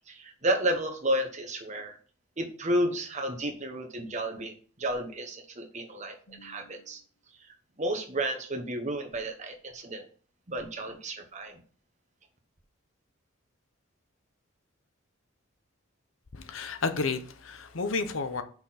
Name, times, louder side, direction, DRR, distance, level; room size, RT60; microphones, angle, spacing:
voice 1, 0.1-2.0 2.4-7.0 7.8-10.0 10.5-11.6, right 1 dB, 35° right, 1.1 m, -32 dB
voice 2, 6.3-6.7 16.3-18.4, left 4 dB, 70° left, 0.8 m, -32 dB
5.9 x 4.4 x 5.7 m
head